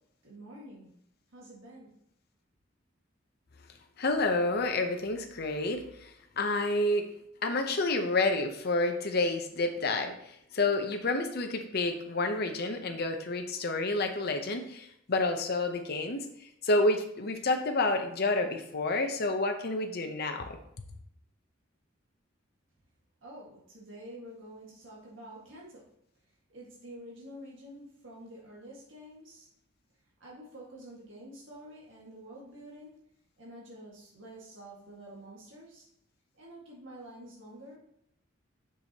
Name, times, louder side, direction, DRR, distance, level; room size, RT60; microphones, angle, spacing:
voice 1, 0.2-0.9 1.3-1.9 23.2-25.8 26.5-29.5 30.2-32.9 33.4-35.9 36.4-37.8, right 1 dB, 70° right, -4 dB, 1.9 m, -48 dB
voice 2, 4.0-6.1 6.4-7.1 7.4-20.6, left 2 dB, 55° left, 5 dB, 0.8 m, -29 dB
7.0 x 6.2 x 2.9 m, 0.72 s
head